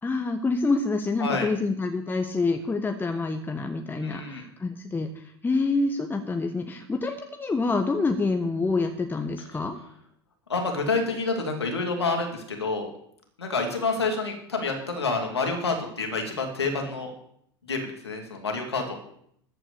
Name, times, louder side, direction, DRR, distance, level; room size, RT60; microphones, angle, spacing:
voice 1, 0.0-9.8, left 3 dB, 15° left, 4 dB, 1.3 m, -27 dB
voice 2, 4.0-4.4 10.5-12.9 13.4-17.1 17.7-18.9, left 3 dB, 85° left, 3 dB, 2.8 m, -28 dB
14.0 x 6.0 x 8.3 m, 0.68 s
hypercardioid pair, 80°, 13 cm